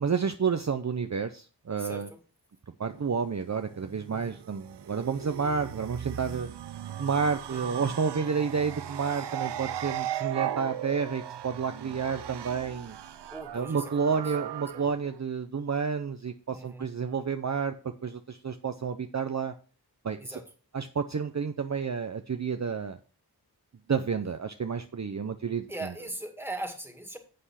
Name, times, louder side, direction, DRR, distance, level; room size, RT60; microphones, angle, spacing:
voice 1, 0.0-2.1 2.8-6.5 7.0-13.0 13.5-17.7 18.0-19.5 20.0-20.4 20.7-23.0 23.9-25.7, right 6 dB, 45° right, 7 dB, 0.6 m, -30 dB
voice 2, 1.8-2.2 4.1-4.4 7.5-7.8 13.3-14.2 14.7-14.9 16.5-16.9 20.2-20.5 25.7-27.2, right 1 dB, 5° right, 4 dB, 2.0 m, -40 dB
sound 1, 2.8-15.2, right 11 dB, 90° right, 0.5 m, -38 dB
7.8 x 6.6 x 5.7 m, 0.36 s
wide cardioid pair, 70°, 39 cm